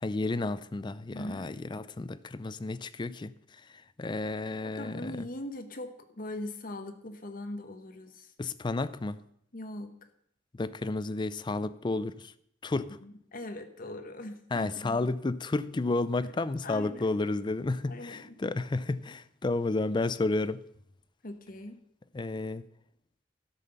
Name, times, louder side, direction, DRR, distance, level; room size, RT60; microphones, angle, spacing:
voice 1, 0.0-3.3 4.0-5.3 8.4-9.2 10.5-12.3 12.6-13.0 14.5-20.6 22.1-22.6, left 2 dB, 25° left, 0.4 m, -31 dB
voice 2, 1.1-1.5 4.6-8.3 9.5-9.9 13.0-15.1 16.2-16.3 16.6-17.2 17.9-18.4 21.2-21.8, left 1 dB, 50° left, 1.1 m, -41 dB
13.0 x 5.8 x 6.7 m
head